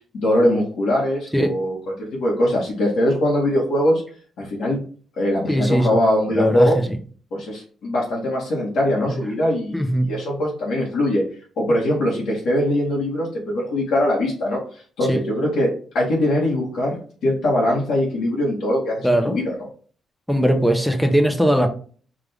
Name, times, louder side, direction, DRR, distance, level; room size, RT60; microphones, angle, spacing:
voice 1, 0.1-4.0 4.4-4.8 5.2-6.8 7.3-11.2 11.6-15.7 15.9-19.5, left 1 dB, 80° left, -4 dB, 1.3 m, -21 dB
voice 2, 5.5-6.0 6.3-6.9 9.1-9.2 9.7-10.1 15.1-15.2 19.0-19.4 20.3-21.7, equal, ahead, 6 dB, 0.6 m, -19 dB
5.0 x 2.4 x 3.4 m, 0.43 s
cardioid pair, 155°, 0 cm